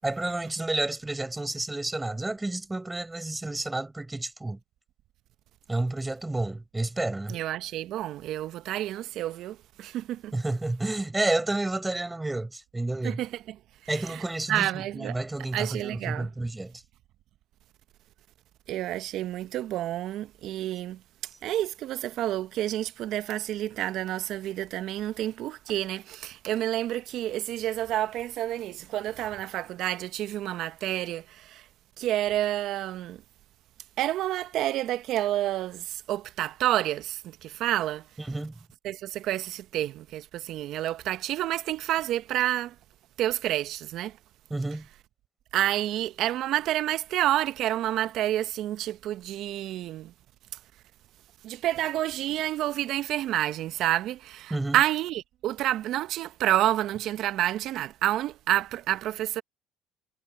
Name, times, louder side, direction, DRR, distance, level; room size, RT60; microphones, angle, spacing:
voice 1, 0.0-4.6 5.7-7.4 10.3-13.2 13.9-16.8 38.3-38.5 44.5-44.9 54.5-54.8, right 2 dB, 15° right, 7.8 m, -30 dB
voice 2, 7.3-10.3 13.0-13.6 13.9-14.2 14.5-15.2 15.5-16.3 18.7-21.0 21.4-31.6 32.0-33.2 34.0-38.1 38.8-42.7 43.2-44.2 45.5-50.1 51.4-59.4, right 13 dB, 65° right, 1.2 m, -29 dB
hypercardioid pair, 70°, 0 cm